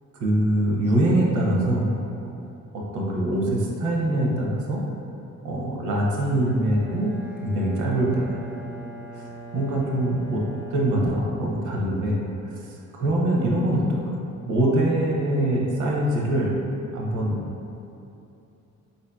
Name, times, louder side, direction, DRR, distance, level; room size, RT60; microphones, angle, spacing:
voice 1, 0.2-2.0 2.7-4.8 5.4-7.1 7.4-8.4 9.1-12.2 12.6-16.5 16.9-17.4, right 1 dB, 75° right, -3 dB, 0.7 m, -24 dB
Bowed string instrument, 6.4-11.9, right 2 dB, 5° right, 0.4 m, -41 dB
3.9 x 2.7 x 2.2 m, 2.8 s
cardioid pair, 90°, 30 cm